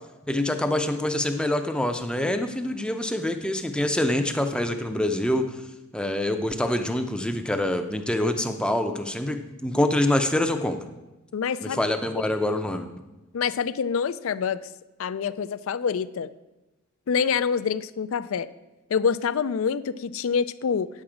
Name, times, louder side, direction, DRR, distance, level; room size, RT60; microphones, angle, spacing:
voice 1, 0.3-5.5 5.9-10.8 11.6-12.9, left 1 dB, 5° left, 7 dB, 0.5 m, -25 dB
voice 2, 11.3-11.8 13.3-14.7 15.0-16.3 17.1-18.5 18.9-20.9, left 6 dB, 65° left, 15 dB, 0.4 m, -26 dB
9.4 x 7.4 x 4.9 m, 1.0 s
head